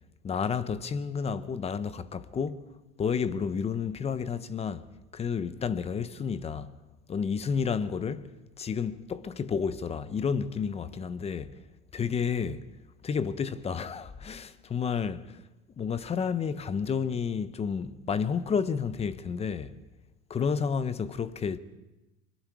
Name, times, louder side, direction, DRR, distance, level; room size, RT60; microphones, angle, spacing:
voice 1, 0.2-2.6 3.0-4.9 5.1-6.7 7.1-8.2 8.6-11.6 11.9-12.7 13.0-15.4 15.8-19.8 20.3-21.6, left 6 dB, 15° left, 0.6 m, -31 dB
25.5 x 22.0 x 4.7 m
supercardioid pair, 125°, 45 cm